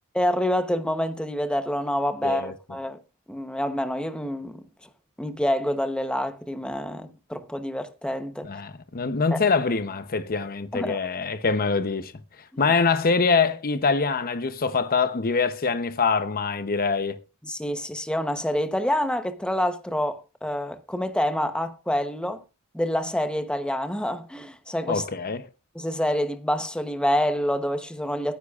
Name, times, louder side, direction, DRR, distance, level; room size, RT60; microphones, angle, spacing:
voice 1, 0.1-3.0 3.3-4.6 5.2-8.5 9.3-9.4 10.7-11.0 12.5-12.6 17.4-22.4 22.7-25.0 25.7-28.4, equal, 5° left, 0.8 m, -27 dB
voice 2, 2.2-2.5 8.4-12.1 12.6-17.2 24.9-25.5, left 4 dB, 40° left, 0.8 m, -24 dB
19.0 x 9.8 x 2.4 m
head